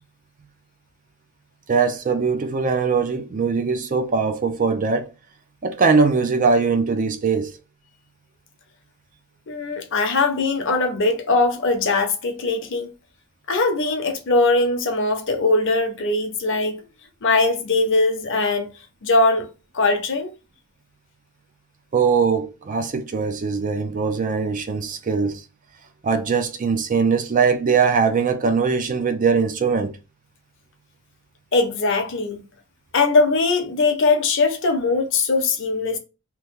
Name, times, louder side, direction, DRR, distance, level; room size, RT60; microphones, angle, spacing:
voice 1, 1.7-5.1 5.6-7.6 21.9-25.4 26.0-30.0, right 5 dB, 35° right, 0.4 m, -21 dB
voice 2, 9.5-12.9 13.5-16.8 17.2-18.7 19.0-19.5 19.7-20.3 31.5-32.4 32.9-36.0, left 3 dB, 55° left, 0.7 m, -20 dB
2.9 x 2.1 x 3.5 m
head